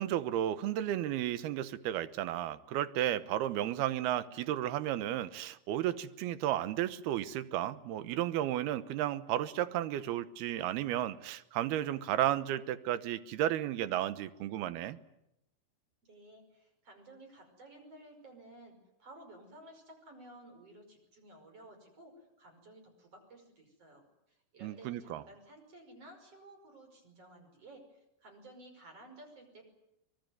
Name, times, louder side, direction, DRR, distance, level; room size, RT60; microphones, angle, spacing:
voice 1, 0.0-15.0 24.6-25.2, right 12 dB, 80° right, 3.0 m, -33 dB
voice 2, 16.0-29.6, right 1 dB, 35° right, 6.4 m, -55 dB
24.0 x 21.5 x 9.4 m
omnidirectional pair, 4.6 m